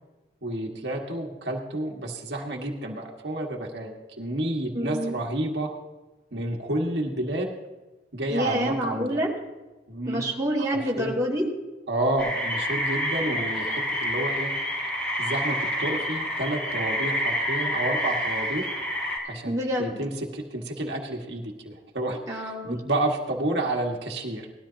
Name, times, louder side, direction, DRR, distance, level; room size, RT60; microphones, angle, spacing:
voice 1, 0.4-5.7 6.3-7.6 8.1-9.2 9.9-10.3 11.0-11.2 11.9-14.5 15.2-18.7 19.2-24.5, right 1 dB, 85° right, 0 dB, 1.6 m, -30 dB
voice 2, 4.7-5.1 8.3-9.3 10.1-11.5 19.5-20.0 22.3-22.8, equal, 20° right, -5 dB, 2.6 m, -27 dB
sound 1, 12.2-19.2, equal, 10° left, 3.3 m, -28 dB
19.0 x 13.0 x 2.9 m, 1.1 s
head